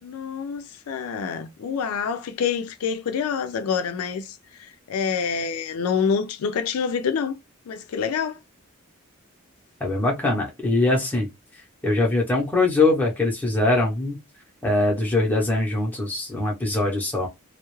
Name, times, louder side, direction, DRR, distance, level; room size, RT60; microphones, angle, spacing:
voice 1, 0.0-7.3 7.7-8.4, left 6 dB, 85° left, 0.4 m, -27 dB
voice 2, 9.8-11.3 11.8-14.2 14.6-17.3, left 2 dB, 10° left, 0.6 m, -22 dB
2.3 x 2.0 x 3.0 m
head